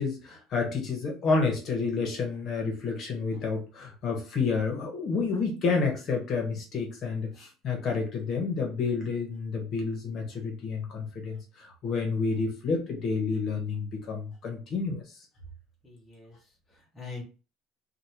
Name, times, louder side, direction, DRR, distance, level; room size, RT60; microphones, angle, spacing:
voice 1, 0.0-15.0, left 4 dB, 35° left, 1 dB, 0.9 m, -29 dB
voice 2, 15.8-17.2, left 4 dB, 5° left, -4 dB, 0.7 m, -44 dB
3.3 x 2.2 x 2.8 m, 0.33 s
cardioid pair, 180°, 0 cm